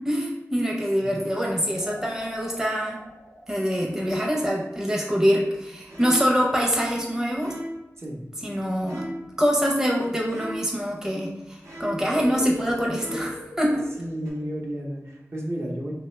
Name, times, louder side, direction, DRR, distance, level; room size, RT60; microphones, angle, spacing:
voice 1, 0.0-3.0 3.5-7.6 8.4-9.1 9.4-13.9, equal, 10° right, -2 dB, 0.6 m, -25 dB
sound 1, 1.8-5.2 12.0-14.8, left 1 dB, 50° left, 0.4 m, -43 dB
sound 2, 5.9-6.5 7.4-7.9 8.9-9.4 10.3-10.8 11.6-12.2 12.9-13.5 14.2-14.3, equal, 90° right, 0.7 m, -37 dB
voice 2, 14.0-15.9, equal, 55° right, -3 dB, 0.7 m, -32 dB
2.8 x 2.2 x 3.1 m, 0.99 s
wide cardioid pair, 40°, 5 cm